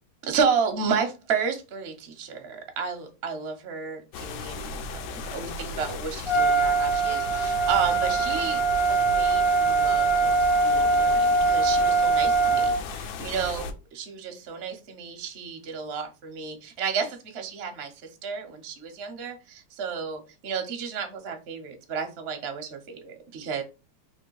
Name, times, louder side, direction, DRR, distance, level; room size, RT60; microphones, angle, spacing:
voice 1, 0.2-10.3 10.6-13.7 14.0-17.9 18.2-23.6, right 6 dB, 55° right, 0.7 m, -32 dB
sound 1, 4.1-13.7, left 4 dB, 80° left, 1.3 m, -36 dB
Trumpet, 6.3-12.8, right 3 dB, 35° left, 0.4 m, -22 dB
3.4 x 2.9 x 4.6 m
omnidirectional pair, 2.2 m